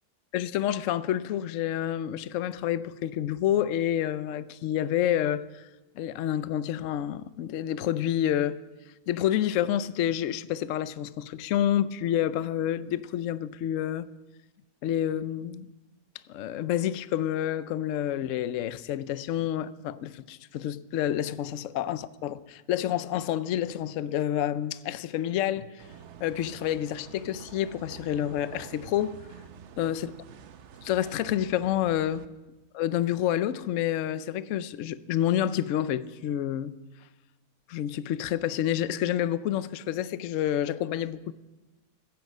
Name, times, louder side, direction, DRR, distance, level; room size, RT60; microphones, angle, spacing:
voice 1, 0.3-5.6 6.0-8.6 9.1-14.1 14.8-15.7 16.3-25.7 26.2-29.2 29.8-30.1 30.8-32.3 32.7-36.7 37.7-41.3, left 11 dB, 65° left, 0.9 m, -28 dB
sound 1, 25.8-32.2, right 7 dB, 55° right, 0.9 m, -48 dB
15.5 x 15.0 x 5.5 m
omnidirectional pair, 1.7 m